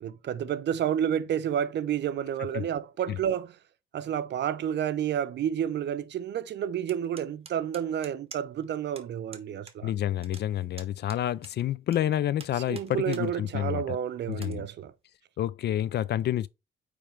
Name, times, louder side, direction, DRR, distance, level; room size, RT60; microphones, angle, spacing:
voice 1, 0.0-3.6 3.9-9.9 12.7-14.9, right 9 dB, 60° right, 0.6 m, -30 dB
sound 1, 6.9-8.7 9.0-9.1 9.3-9.8 10.0-12.0 12.4-13.3 13.7-13.8 14.3-14.5, right 5 dB, 30° right, 1.2 m, -47 dB
voice 2, 9.8-14.0 14.3-14.7 15.4-16.5, left 12 dB, 60° left, 0.4 m, -29 dB
8.7 x 3.3 x 3.3 m
cardioid pair, 90°, 20 cm